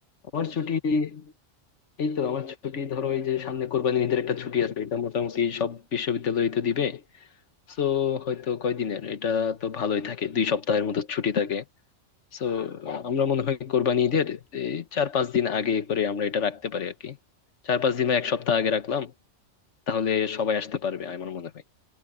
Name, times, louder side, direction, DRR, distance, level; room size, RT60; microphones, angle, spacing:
voice 1, 0.3-1.3 2.0-7.0 7.8-11.6 12.3-17.2 17.6-19.1 19.9-21.5, left 7 dB, 70° left, 1.5 m, -26 dB
omnidirectional pair, 1.3 m